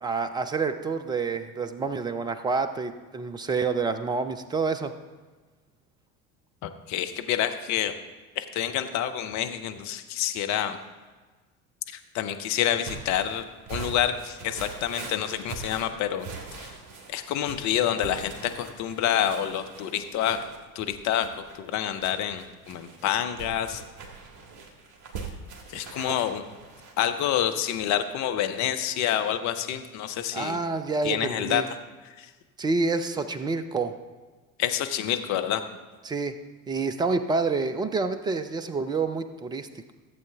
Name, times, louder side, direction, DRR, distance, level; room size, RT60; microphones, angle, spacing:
voice 1, 0.0-4.9 30.3-31.6 32.6-34.0 36.0-36.3 36.7-39.9, right 4 dB, 10° right, 10 dB, 0.3 m, -28 dB
voice 2, 6.6-7.9 8.4-10.8 11.9-16.7 17.1-20.4 20.7-23.8 25.7-26.5 27.0-30.6 31.0-31.6 32.0-32.3 34.6-35.6, left 10 dB, 40° left, 9 dB, 0.8 m, -28 dB
sound 1, 12.8-27.2, right 4 dB, 45° right, 1.7 m, -42 dB
14.5 x 7.7 x 3.4 m, 1.3 s
figure-of-eight pair, 65°, 43 cm